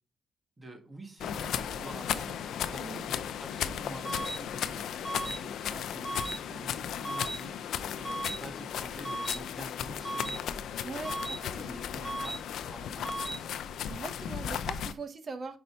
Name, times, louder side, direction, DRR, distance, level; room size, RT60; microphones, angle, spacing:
voice 1, 0.6-2.4 2.7-10.4 11.1-13.5, right 2 dB, 20° right, 4 dB, 1.9 m, -48 dB
sound 1, 1.2-14.9, left 9 dB, 75° left, 0.5 m, -36 dB
sound 2, 4.0-4.4 5.0-5.4 6.0-6.4 7.0-7.4 8.0-8.4 9.0-9.4 10.0-10.4 11.0-11.4 12.0-12.4 13.0-13.4, right 2 dB, 5° right, 1.3 m, -35 dB
voice 2, 10.8-11.8 13.8-15.6, right 4 dB, 40° right, 9 dB, 1.0 m, -41 dB
5.6 x 5.1 x 4.4 m, 0.35 s
cardioid pair, 90°, 0 cm